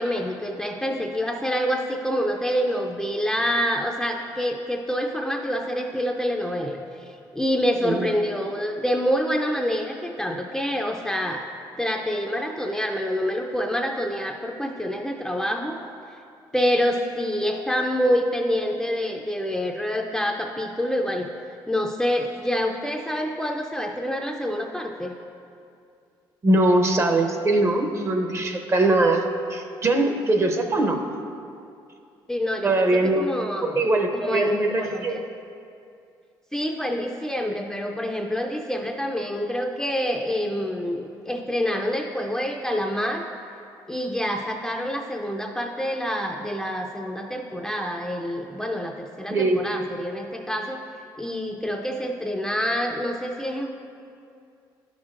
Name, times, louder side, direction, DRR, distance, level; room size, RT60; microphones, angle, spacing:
voice 1, 0.0-11.5 11.8-15.8 16.5-21.3 21.7-25.2 32.3-33.8 34.1-35.2 36.5-43.2 43.9-50.8 51.2-53.7, equal, 5° left, 2 dB, 0.4 m, -27 dB
voice 2, 26.4-31.0 32.6-33.4 33.8-35.2 49.3-49.6, right 2 dB, 30° right, 4 dB, 0.7 m, -21 dB
10.5 x 6.2 x 2.5 m, 2.4 s
cardioid pair, 90°, 9 cm